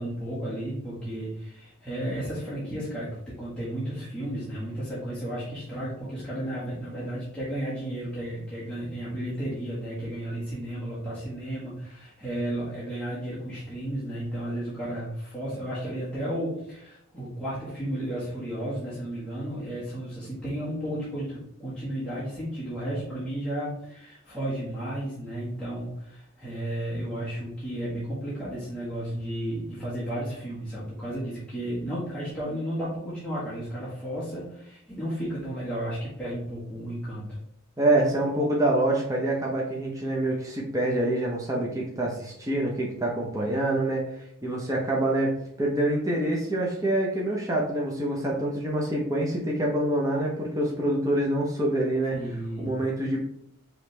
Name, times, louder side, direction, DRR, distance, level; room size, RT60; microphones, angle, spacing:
voice 1, 0.0-37.3 52.1-52.7, right 1 dB, 5° left, -11 dB, 1.4 m, -33 dB
voice 2, 37.8-44.0 44.4-45.3 45.6-52.2 52.6-53.3, right 1 dB, 15° right, -3 dB, 0.7 m, -26 dB
4.9 x 3.2 x 3.2 m, 0.72 s
head